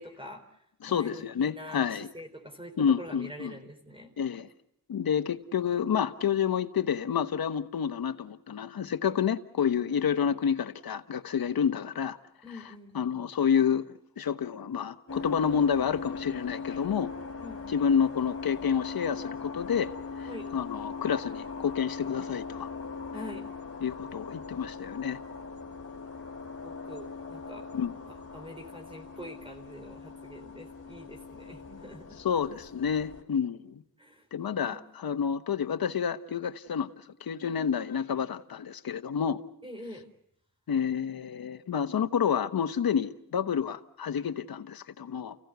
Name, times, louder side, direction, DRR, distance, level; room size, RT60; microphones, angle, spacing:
voice 1, 0.0-4.1 5.0-5.1 12.4-13.0 17.4-17.8 20.2-20.5 23.1-23.5 26.6-27.7 28.0-32.2 34.0-34.8 39.6-40.1, left 1 dB, 15° right, 4.0 m, -45 dB
voice 2, 0.8-2.1 2.8-3.6 4.2-4.5 4.9-12.2 12.9-17.1 17.7-19.9 20.2-22.7 23.8-25.2 27.7-27.9 32.2-33.8 34.3-39.4 40.7-45.4, left 7 dB, 70° left, 1.3 m, -29 dB
sound 1, 15.1-33.2, left 4 dB, 40° left, 3.5 m, -40 dB
30.0 x 16.5 x 8.1 m
cardioid pair, 75°, 37 cm